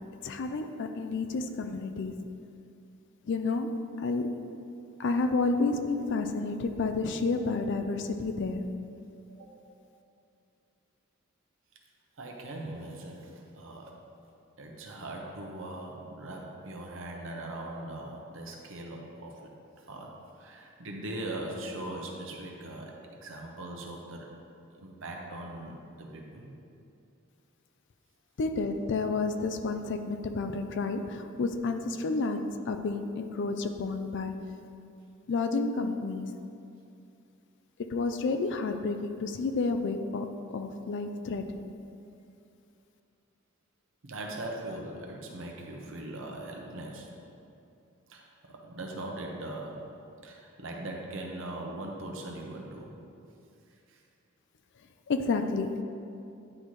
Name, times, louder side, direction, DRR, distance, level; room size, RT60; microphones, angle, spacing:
voice 1, 0.2-2.1 3.3-3.7 4.0-4.3 5.0-8.7 28.4-34.3 35.3-36.3 37.9-40.3 40.5-41.7 55.1-55.8, left 3 dB, 60° left, 7 dB, 0.4 m, -30 dB
voice 2, 12.2-14.0 14.6-19.5 19.9-20.1 20.4-24.3 24.8-26.5 44.0-47.1 48.1-49.9 50.2-52.9 53.9-54.0, right 1 dB, 65° right, 0 dB, 0.9 m, -40 dB
9.9 x 4.1 x 3.1 m, 2.6 s
head